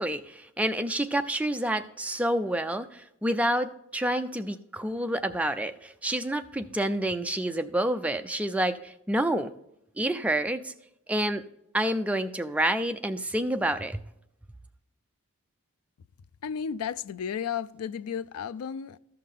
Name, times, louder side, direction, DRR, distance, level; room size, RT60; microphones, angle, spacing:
voice 1, 0.0-9.5 10.0-10.7 11.1-11.4 11.7-14.0, right 1 dB, 5° right, 0.4 m, -28 dB
voice 2, 16.4-19.0, left 7 dB, 85° left, 0.4 m, -33 dB
14.0 x 5.7 x 3.6 m
head